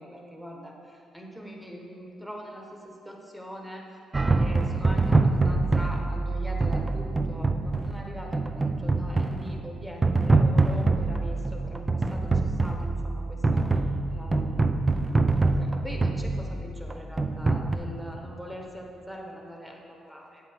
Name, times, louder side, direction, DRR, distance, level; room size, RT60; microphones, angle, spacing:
voice 1, 0.0-4.0 4.3-13.8 14.1-20.5, equal, 5° right, 0 dB, 1.2 m, -42 dB
sound 1, 4.1-17.8, right 3 dB, 25° right, 0.4 m, -25 dB
8.5 x 7.6 x 3.5 m, 2.8 s
cardioid pair, 90°, 0 cm